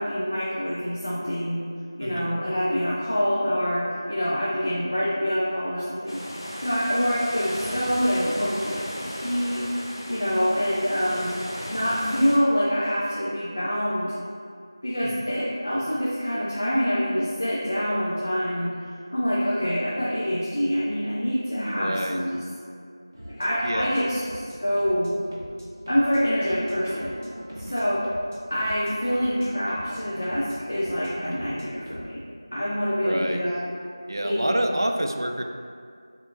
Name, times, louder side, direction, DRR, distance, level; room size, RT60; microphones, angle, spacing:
voice 1, 0.0-1.6 2.0-6.2 6.6-9.7 10.1-11.3 11.7-14.1 14.8-22.4 23.3-25.1 25.9-27.1 27.7-28.0 28.5-32.2 32.5-33.6 34.2-34.6, equal, 30° left, -8 dB, 0.4 m, -26 dB
voice 2, 2.0-2.4 15.0-15.3 21.6-22.2 23.6-24.1 27.5-27.8 33.0-33.4 34.1-35.4, right 1 dB, 55° right, 3 dB, 0.4 m, -28 dB
sound 1, 6.1-12.4, equal, 85° left, 1.0 m, -36 dB
sound 2, 23.1-32.1, equal, 35° right, 0.9 m, -42 dB
6.7 x 2.9 x 2.4 m, 2.2 s
figure-of-eight pair, 180°, 2 cm